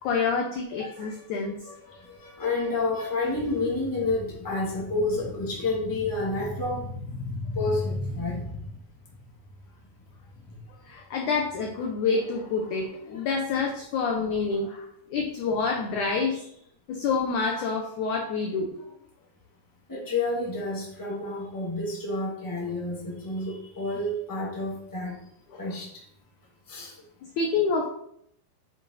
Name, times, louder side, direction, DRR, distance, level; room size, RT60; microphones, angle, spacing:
voice 1, 0.0-1.5 10.9-16.5 16.9-18.7 27.4-27.9, left 4 dB, 75° left, 1 dB, 1.8 m, -27 dB
voice 2, 0.8-1.1 1.4-8.6 10.4-10.6 19.9-25.2 25.5-25.9 26.7-26.9, left 2 dB, 5° left, -5 dB, 1.6 m, -30 dB
7.9 x 7.4 x 4.2 m, 0.70 s
omnidirectional pair, 4.7 m